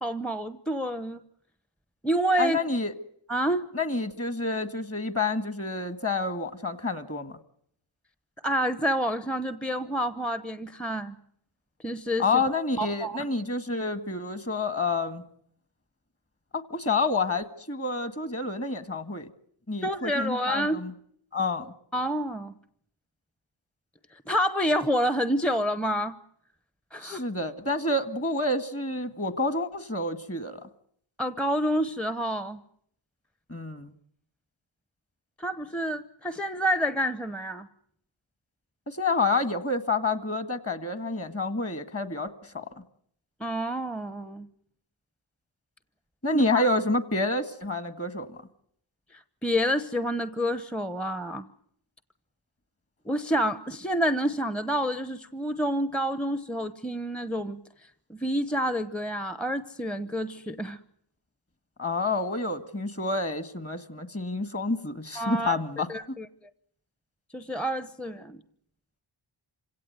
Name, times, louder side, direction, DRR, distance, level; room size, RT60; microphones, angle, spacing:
voice 1, 0.0-1.2 2.0-2.6 3.3-3.7 8.4-11.1 11.8-12.2 12.8-13.2 19.8-20.8 21.9-22.5 24.3-26.2 26.9-27.2 31.2-32.6 35.4-37.7 43.4-44.5 46.3-46.7 49.1-51.5 53.0-57.6 58.1-60.8 65.2-65.6 65.9-66.3 67.3-68.4, equal, ahead, 12 dB, 0.9 m, -28 dB
voice 2, 2.4-2.9 3.7-7.4 12.2-15.2 16.5-19.3 19.7-20.9 21.3-21.7 27.0-30.7 33.5-33.9 38.9-42.7 46.2-48.4 61.8-66.2, left 3 dB, 30° left, 11 dB, 1.8 m, -28 dB
27.0 x 17.0 x 9.3 m, 0.70 s
cardioid pair, 55°, 50 cm